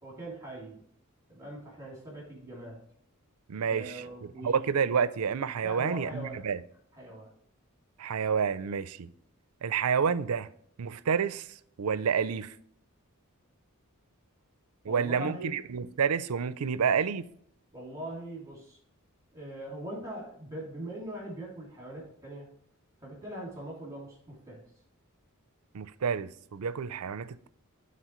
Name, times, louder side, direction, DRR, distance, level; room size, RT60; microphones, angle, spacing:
voice 1, 0.0-0.8 1.3-2.8 3.7-4.7 5.6-6.4 6.9-7.3 14.8-15.5 17.7-18.8 19.3-22.5 23.0-24.6, right 1 dB, 15° right, 2.5 m, -41 dB
voice 2, 3.5-4.0 4.4-6.6 8.0-9.1 9.6-10.5 10.8-11.5 11.8-12.5 14.8-17.3 25.7-27.5, right 6 dB, 85° right, 0.5 m, -29 dB
12.5 x 4.2 x 3.1 m
head